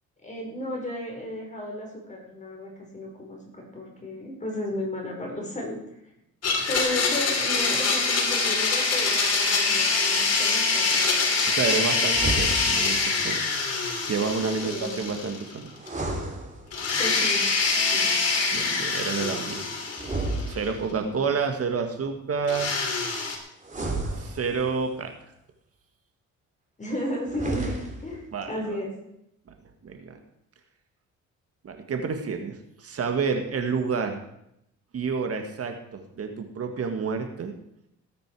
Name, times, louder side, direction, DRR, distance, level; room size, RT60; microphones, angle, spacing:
voice 1, 0.2-5.8 6.6-11.0 14.6-15.0 17.0-17.4 17.9-18.1 21.0-21.1 23.7-23.8 26.8-27.7 28.0-28.9, left 1 dB, 25° left, -1 dB, 5.0 m, -34 dB
Domestic sounds home sounds, 6.4-15.6 15.9-16.0 16.7-20.7 22.5-23.4, left 4 dB, 55° left, 3.5 m, -25 dB
voice 2, 11.5-13.4 14.1-15.7 18.5-19.8 20.4-22.7 24.1-25.1 28.3-28.8 29.8-30.2 31.6-34.2 34.9-37.5, right 5 dB, 50° right, 5 dB, 1.7 m, -29 dB
sound 1, 12.1-13.0 15.7-17.1 19.9-21.1 23.6-24.9 27.2-28.2, right 2 dB, 25° right, 3.4 m, -32 dB
18.0 x 9.3 x 4.8 m, 0.79 s
cardioid pair, 90°, 30 cm